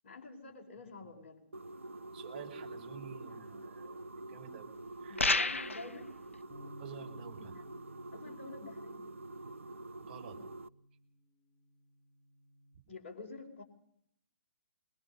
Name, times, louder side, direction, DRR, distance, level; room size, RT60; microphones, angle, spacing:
voice 1, 0.0-1.5 5.1-6.1 7.5-7.6 8.1-9.1 12.9-13.6, left 3 dB, 45° left, 0 dB, 4.8 m, -48 dB
sound 1, 1.5-10.7, right 2 dB, 75° right, 0.8 m, -47 dB
voice 2, 2.1-5.3 6.8-7.6 10.0-10.4, right 7 dB, 40° right, 1 dB, 5.4 m, -50 dB
sound 2, 5.2-5.9, left 3 dB, 80° left, 0.7 m, -29 dB
Bass guitar, 6.5-12.7, equal, 10° left, 2.9 m, -57 dB
24.0 x 22.0 x 5.5 m, 0.68 s
figure-of-eight pair, 125°, 7 cm